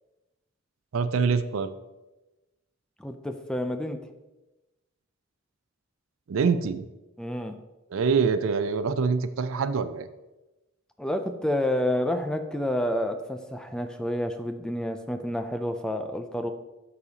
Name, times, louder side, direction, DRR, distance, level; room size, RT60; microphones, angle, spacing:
voice 1, 0.9-1.7 6.3-6.8 7.9-10.1, right 5 dB, 75° right, 12 dB, 0.4 m, -25 dB
voice 2, 3.0-4.0 7.2-7.6 11.0-16.5, left 1 dB, 5° left, 7 dB, 0.4 m, -29 dB
11.5 x 4.1 x 2.8 m, 1.1 s
head